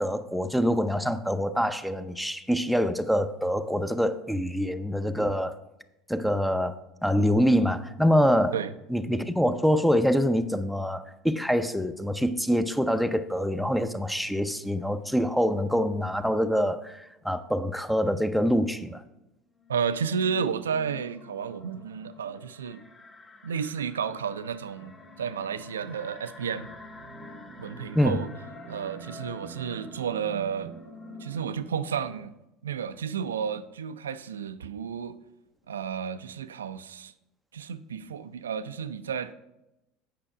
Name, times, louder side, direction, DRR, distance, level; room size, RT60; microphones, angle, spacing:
voice 1, 0.0-5.6 6.1-8.6 8.9-19.0 27.9-28.2, equal, ahead, 0.6 m, -25 dB
sound 1, 19.6-31.5, left 4 dB, 35° left, 1.8 m, -49 dB
voice 2, 19.7-22.8 23.4-26.7 27.6-28.3 28.7-30.7 31.2-32.3 32.6-35.2 35.7-37.1 37.5-39.3, right 7 dB, 85° right, 0.4 m, -32 dB
sound 2, 24.8-32.3, right 5 dB, 50° right, 0.8 m, -48 dB
8.7 x 5.8 x 4.8 m
hypercardioid pair, 75°, 0 cm